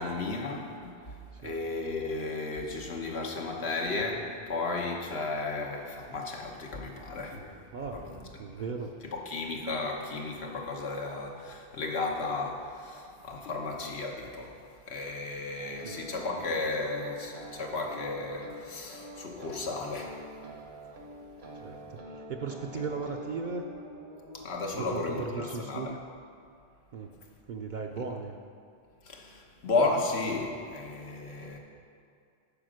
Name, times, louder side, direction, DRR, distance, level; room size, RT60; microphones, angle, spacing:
voice 1, 0.0-7.4 7.9-8.6 9.0-20.2 22.7-22.8 24.3-25.9 29.0-31.6, left 3 dB, 90° left, 0 dB, 1.3 m, -34 dB
voice 2, 7.7-8.1 8.4-8.9 15.8-16.0 21.6-23.7 24.7-26.0 26.9-27.2 27.5-28.4, right 4 dB, 55° right, 2 dB, 0.6 m, -37 dB
sound 1, 15.6-25.3, right 1 dB, 75° right, 1.4 m, -46 dB
8.7 x 5.0 x 6.3 m, 2.5 s
omnidirectional pair, 1.1 m